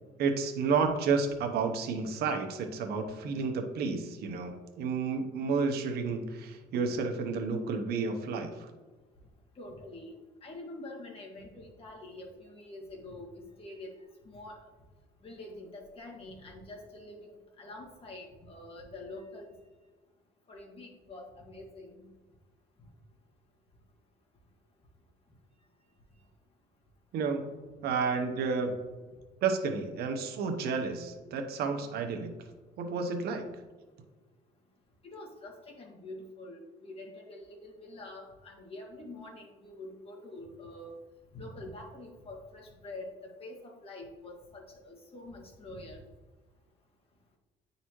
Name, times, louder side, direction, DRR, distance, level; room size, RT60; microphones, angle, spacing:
voice 1, 0.2-8.7 27.1-27.5 27.8-28.7 29.4-32.3 32.8-33.4, right 5 dB, 70° right, 5 dB, 0.9 m, -31 dB
voice 2, 9.6-10.1 10.4-13.9 14.3-14.6 15.2-19.5 20.5-22.1 35.0-41.0 41.3-46.0, left 2 dB, 35° left, -1 dB, 1.8 m, -46 dB
9.4 x 4.1 x 3.1 m, 1.3 s
cardioid pair, 110°, 17 cm